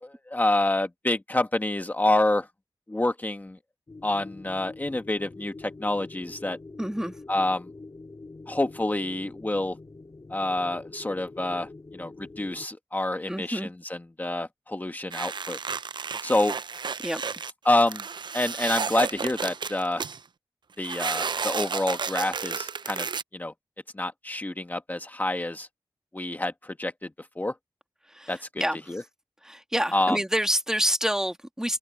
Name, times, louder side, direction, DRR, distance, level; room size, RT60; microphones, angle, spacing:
voice 1, 0.0-2.5 2.9-3.6 4.0-6.6 7.3-7.7 8.5-9.8 10.3-15.6 16.2-16.6 17.6-18.0 18.3-20.0 20.8-23.1 23.3-23.5 23.9-25.7 26.1-27.1 27.4-27.5 28.3-28.5 28.9-29.0 29.9-30.2, left 1 dB, 20° left, 1.4 m, -27 dB
sound 1, 3.9-12.7, left 3 dB, 45° left, 5.3 m, -45 dB
voice 2, 6.8-7.1 13.3-13.7 17.0-17.2 28.1-28.3 28.6-28.8 29.4-31.8, equal, 5° right, 2.2 m, -27 dB
sound 2, 15.1-20.2 20.8-23.2, right 5 dB, 65° right, 0.6 m, -32 dB
wide cardioid pair, 65°, 8 cm